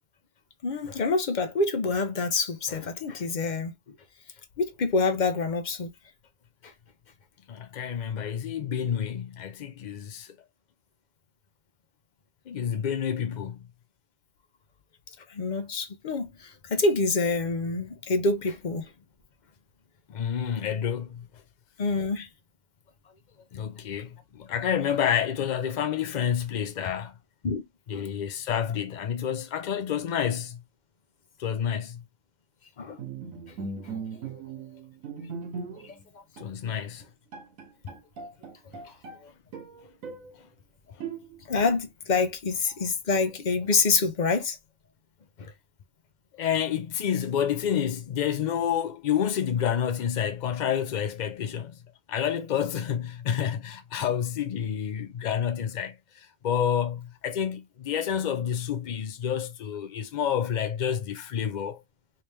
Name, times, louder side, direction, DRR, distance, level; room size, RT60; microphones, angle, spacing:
voice 1, 0.6-3.7 4.6-5.9 15.3-18.9 21.8-22.3 27.4-27.6 27.9-28.1 32.8-33.0 34.3-34.4 35.8-36.2 36.7-36.8 38.8-38.9 39.2-39.3 41.5-44.6 45.4-45.5, left 3 dB, 45° left, 0.7 m, -27 dB
voice 2, 7.5-10.4 12.5-13.6 20.1-21.3 23.5-27.1 27.9-30.6 31.4-32.0 36.4-37.0 46.3-51.8 52.1-61.8, left 8 dB, 80° left, 0.4 m, -29 dB
Bowed string instrument, 33.0-36.0 36.4-36.6 37.0-37.1 37.3-39.2 39.5-40.3 41.0-41.6, right 5 dB, 85° right, 1.3 m, -39 dB
3.2 x 2.9 x 3.3 m
omnidirectional pair, 1.4 m